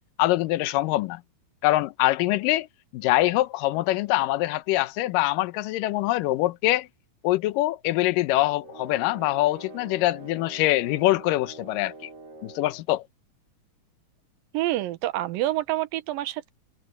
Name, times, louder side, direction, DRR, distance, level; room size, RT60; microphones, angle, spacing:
voice 1, 0.2-1.2 1.6-2.7 2.9-6.9 7.2-11.9 12.4-13.0, left 17 dB, 80° left, 2.4 m, -24 dB
sound 1, 8.6-12.9, right 3 dB, 45° right, 7.4 m, -44 dB
voice 2, 14.5-16.5, right 15 dB, 85° right, 2.7 m, -27 dB
omnidirectional pair, 3.9 m